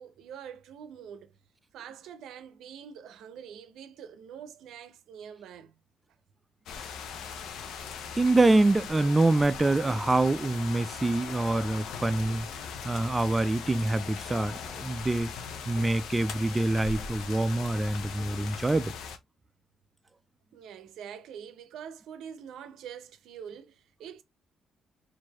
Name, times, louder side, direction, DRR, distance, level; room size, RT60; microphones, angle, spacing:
voice 1, 0.0-1.4 1.7-5.8 20.5-24.2, right 8 dB, 75° right, 0.6 m, -45 dB
sound 1, 6.7-19.2, left 6 dB, 75° left, 0.6 m, -40 dB
voice 2, 8.2-12.5 12.8-15.3 15.7-18.9, right 2 dB, 20° right, 0.4 m, -25 dB
4.5 x 2.6 x 2.8 m
supercardioid pair, 60°, 0 cm